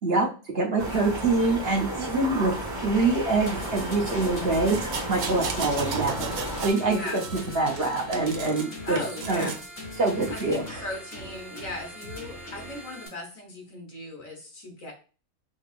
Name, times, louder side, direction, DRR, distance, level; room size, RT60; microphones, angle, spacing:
voice 1, 0.5-2.5 2.8-6.3 6.6-7.2 7.5-9.0 9.3-9.5 10.0-10.8, right 3 dB, 50° right, 0 dB, 0.9 m, -25 dB
sound 1, 0.8-6.7, right 1 dB, 20° right, 1.5 m, -33 dB
sound 2, 3.5-13.1, left 1 dB, 90° left, 3.1 m, -40 dB
sound 3, 4.7-6.8 7.1-8.7 9.0-9.7 10.3-10.4, right 5 dB, 75° right, 0.4 m, -35 dB
voice 2, 6.8-7.2 8.8-9.6 10.3-14.9, left 2 dB, 65° left, 1 dB, 1.7 m, -37 dB
5.3 x 3.4 x 2.4 m, 0.36 s
omnidirectional pair, 1.5 m